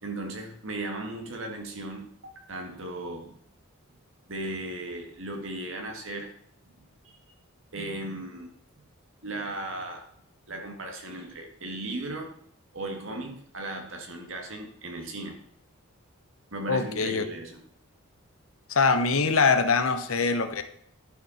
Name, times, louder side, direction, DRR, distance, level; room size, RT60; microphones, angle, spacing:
voice 1, 0.0-3.3 4.3-6.3 7.0-7.2 7.7-8.5 9.2-10.1 10.5-12.3 12.7-15.4 16.5-17.6, right 2 dB, 60° right, 3 dB, 2.0 m, -36 dB
voice 2, 16.7-17.2 18.7-20.6, left 4 dB, 70° left, 9 dB, 0.9 m, -23 dB
11.0 x 6.1 x 4.2 m, 0.67 s
head